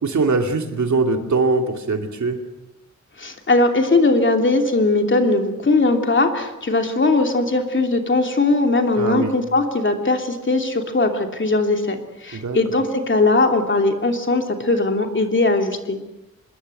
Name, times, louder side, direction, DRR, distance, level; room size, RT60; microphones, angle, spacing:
voice 1, 0.0-2.4 9.0-9.3 12.3-12.6, right 3 dB, 70° right, 5 dB, 2.6 m, -21 dB
voice 2, 3.2-16.0, left 2 dB, 40° left, 4 dB, 2.8 m, -19 dB
26.0 x 21.5 x 7.8 m, 0.96 s
wide cardioid pair, 140°, 29 cm